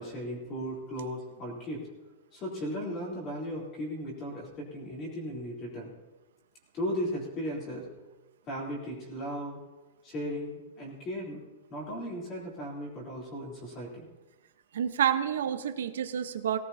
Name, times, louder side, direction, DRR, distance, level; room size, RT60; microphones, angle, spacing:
voice 1, 0.0-1.8 2.3-5.9 6.7-7.9 8.5-9.6 10.0-11.4 11.7-14.1, equal, 20° left, -3 dB, 3.6 m, -36 dB
voice 2, 14.7-16.6, right 9 dB, 80° right, 8 dB, 1.1 m, -28 dB
18.5 x 17.5 x 2.9 m, 1.2 s
supercardioid pair, 180°, 0 cm